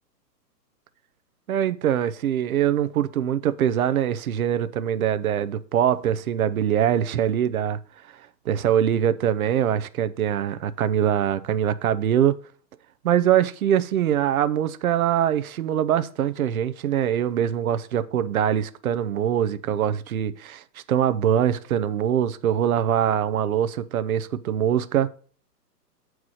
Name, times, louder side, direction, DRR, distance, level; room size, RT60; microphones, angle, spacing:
voice 1, 1.5-7.8 8.5-12.4 13.0-20.6 20.9-25.1, right 10 dB, 60° right, 0.8 m, -23 dB
8.0 x 4.8 x 6.3 m
hypercardioid pair, 135°, 50 cm